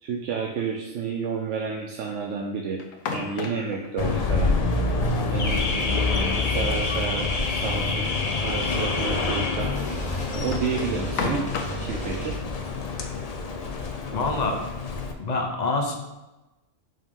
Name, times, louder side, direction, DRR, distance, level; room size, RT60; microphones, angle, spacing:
voice 1, 0.0-2.8 3.1-4.5 5.3-6.2 6.5-8.1 8.4-9.7 10.3-11.5 11.8-12.4, right 5 dB, 70° right, 1 dB, 0.9 m, -30 dB
sound 1, 2.8-3.9 6.0-7.2 7.6-7.7 8.0-8.1 8.9-9.0 10.1-11.9, left 4 dB, 85° left, 1.1 m, -33 dB
Car / Alarm, 4.0-15.1, left 3 dB, 70° left, 0.3 m, -27 dB
sound 2, 5.5-12.4, right 1 dB, 5° left, 1.3 m, -35 dB
voice 2, 14.1-14.6 15.2-16.0, left 3 dB, 40° left, 3 dB, 0.7 m, -26 dB
5.1 x 3.7 x 5.2 m, 1.0 s
omnidirectional pair, 1.4 m